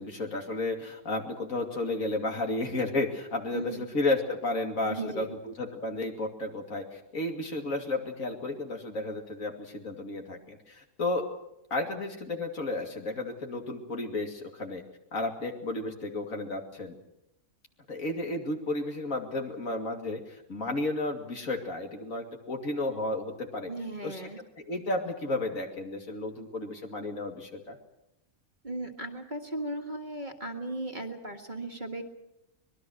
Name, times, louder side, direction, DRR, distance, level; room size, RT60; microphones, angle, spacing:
voice 1, 0.0-11.3 11.7-14.8 15.1-17.0 17.9-23.7 24.0-24.2 24.6-27.8, left 2 dB, 65° left, 3 dB, 2.9 m, -32 dB
voice 2, 3.5-3.9 4.9-5.3 23.7-24.4 28.6-32.0, right 2 dB, 30° right, 4 dB, 1.9 m, -36 dB
25.0 x 20.5 x 6.4 m, 0.86 s
omnidirectional pair, 1.6 m